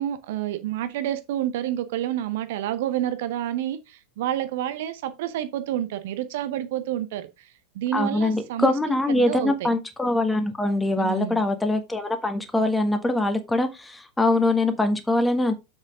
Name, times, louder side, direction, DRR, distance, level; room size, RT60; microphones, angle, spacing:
voice 1, 0.0-9.7 11.0-11.4, right 12 dB, 55° right, 0.8 m, -29 dB
voice 2, 7.9-15.5, left 2 dB, 5° left, 1.4 m, -23 dB
7.4 x 6.3 x 3.7 m
figure-of-eight pair, 90°, 0 cm